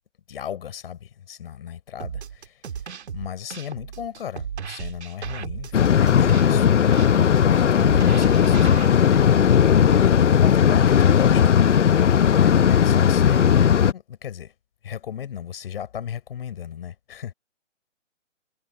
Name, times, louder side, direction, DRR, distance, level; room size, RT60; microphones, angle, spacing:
voice 1, 0.3-2.6 3.1-7.0 7.5-9.3 10.2-11.4 11.9-14.5 14.8-17.3, left 9 dB, 50° left, 4.1 m, -35 dB
sound 1, 2.0-8.9, right 7 dB, 60° right, 2.0 m, -35 dB
sound 2, 5.7-13.9, left 8 dB, 70° left, 1.0 m, -17 dB
hypercardioid pair, 155°, 37 cm